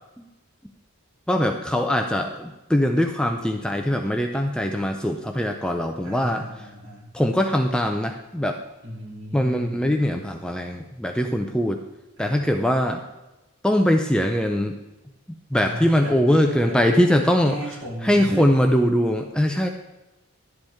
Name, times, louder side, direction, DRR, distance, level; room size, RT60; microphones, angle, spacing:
voice 1, 1.3-6.4 7.1-8.6 9.3-11.8 12.2-13.0 13.6-14.7 15.5-17.6 18.0-19.7, equal, 5° left, 4 dB, 0.5 m, -22 dB
voice 2, 6.0-7.1 8.8-9.9 12.2-12.8 15.6-16.9 17.5-18.6, equal, 60° right, -4 dB, 3.1 m, -36 dB
11.5 x 8.0 x 3.5 m, 0.99 s
head